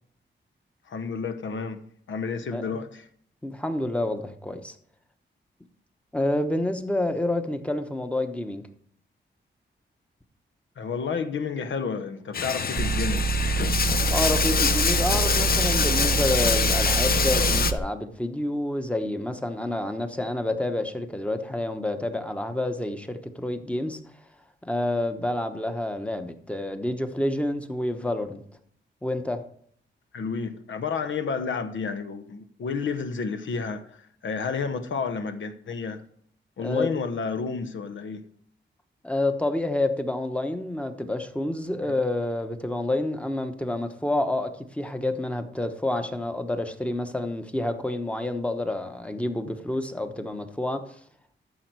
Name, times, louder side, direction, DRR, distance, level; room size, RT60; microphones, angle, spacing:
voice 1, 0.9-3.0 10.8-13.3 30.1-36.0 36.6-38.2 41.8-41.9, left 5 dB, 75° left, 1.0 m, -31 dB
voice 2, 3.4-4.7 6.1-8.6 14.1-24.0 24.7-28.4 29.0-29.4 36.6-36.9 39.0-50.8, left 1 dB, 5° left, 1.0 m, -28 dB
Bathtub (filling or washing), 12.3-17.7, left 6 dB, 50° left, 0.7 m, -25 dB
sound 1, 12.8-17.8, right 5 dB, 30° right, 0.6 m, -26 dB
13.5 x 6.5 x 4.7 m
wide cardioid pair, 135°, 20 cm